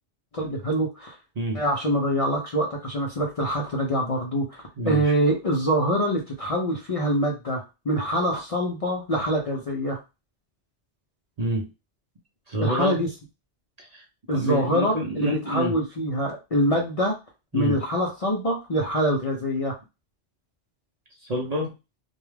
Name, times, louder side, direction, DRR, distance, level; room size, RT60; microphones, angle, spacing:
voice 1, 0.3-1.2 1.5-10.0 12.6-13.1 14.3-17.2 17.5-19.8, equal, 45° left, 0.5 m, -25 dB
voice 2, 4.8-5.1 11.4-11.7 12.5-13.0 13.8-15.8 17.5-17.8 21.2-21.7, right 1 dB, 45° right, 0.6 m, -28 dB
2.2 x 2.2 x 3.2 m
omnidirectional pair, 1.1 m